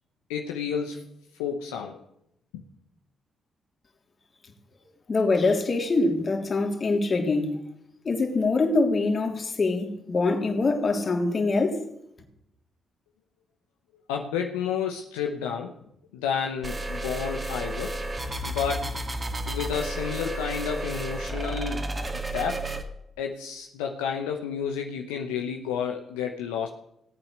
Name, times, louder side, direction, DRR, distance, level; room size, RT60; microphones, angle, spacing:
voice 1, 0.3-1.1 1.4-2.0 2.5-2.6 14.1-15.7 16.1-18.0 18.4-18.9 19.5-21.9 22.3-22.8 23.2-26.7, left 7 dB, 85° left, 0.9 m, -30 dB
voice 2, 5.1-7.6 8.0-11.8, left 3 dB, 45° left, 3.1 m, -24 dB
sound 1, 16.6-22.8, right 1 dB, 30° right, 2.4 m, -32 dB
18.0 x 8.7 x 6.6 m
hypercardioid pair, 45°, 0 cm